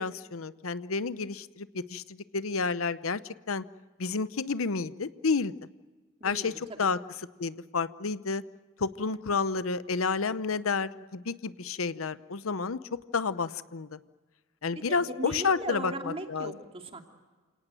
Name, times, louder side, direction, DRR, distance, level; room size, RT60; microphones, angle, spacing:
voice 1, 0.0-3.6 4.0-5.5 6.2-7.0 7.4-8.4 8.8-14.0 14.6-16.5, left 4 dB, 85° left, 15 dB, 0.8 m, -30 dB
voice 2, 6.2-6.9 9.1-9.2 14.8-17.0, right 1 dB, 30° right, 4 dB, 2.7 m, -38 dB
29.0 x 18.0 x 9.1 m, 1.4 s
head